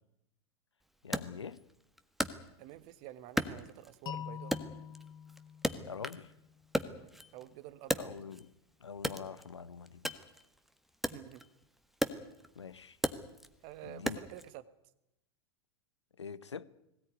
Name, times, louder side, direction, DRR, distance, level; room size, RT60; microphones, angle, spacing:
voice 1, 1.0-1.6 5.7-6.3 8.0-8.5 8.8-10.1 12.5-13.0 13.8-14.2 16.2-16.6, left 6 dB, 85° left, 1.0 m, -44 dB
Wood, 1.1-2.9 3.4-4.1 4.5-6.3 6.6-8.5 9.0-14.5, equal, ahead, 1.5 m, -37 dB
voice 2, 2.6-4.5 6.9-8.0 11.1-11.4 13.6-14.6, right 14 dB, 50° right, 1.5 m, -49 dB
sound 1, 4.1-7.0, left 9 dB, 30° left, 0.8 m, -46 dB
21.0 x 17.0 x 9.6 m
hypercardioid pair, 95°, 14 cm